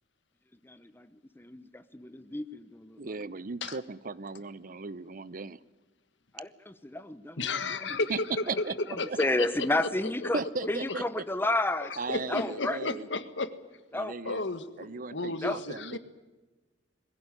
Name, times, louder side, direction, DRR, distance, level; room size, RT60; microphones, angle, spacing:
voice 1, 0.6-3.1 6.3-8.0 9.2-10.4 10.7-11.9 12.3-12.8 13.9-14.1 15.4-15.6, left 2 dB, 10° left, 12 dB, 0.9 m, -31 dB
voice 2, 3.0-5.6 8.1-8.2 8.5-8.8 9.1-9.2 10.3-11.2 12.0-13.1 13.9-14.4 14.8-16.0, right 4 dB, 50° right, 18 dB, 0.7 m, -37 dB
voice 3, 7.4-8.6 9.0-9.7 10.2-10.3 11.8-13.5 14.2-16.0, left 3 dB, 80° left, 12 dB, 1.6 m, -33 dB
21.5 x 16.0 x 9.9 m, 1.2 s
head